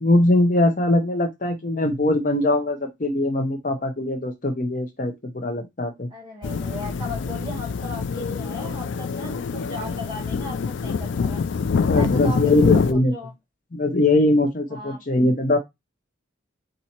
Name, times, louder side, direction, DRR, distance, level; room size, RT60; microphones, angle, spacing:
voice 1, 0.0-6.1 11.8-13.1 13.7-15.6, left 2 dB, 40° left, 4 dB, 0.7 m, -21 dB
voice 2, 6.1-11.4 11.9-13.3 14.7-15.0, left 1 dB, 25° right, -2 dB, 1.3 m, -37 dB
sound 1, 6.4-12.9, left 5 dB, 65° left, 0.4 m, -25 dB
4.2 x 2.7 x 4.3 m, 0.19 s
head